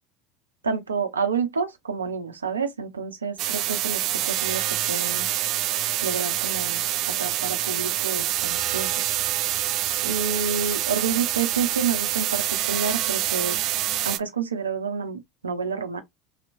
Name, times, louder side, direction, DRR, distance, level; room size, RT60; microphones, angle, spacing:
voice 1, 0.6-5.3 6.0-6.8 7.2-8.9 10.0-13.6 14.0-16.0, right 5 dB, 85° right, 0.8 m, -29 dB
sound 1, 3.4-14.2, right 13 dB, 50° right, 0.4 m, -26 dB
4.0 x 2.9 x 2.5 m
hypercardioid pair, 75°, 0 cm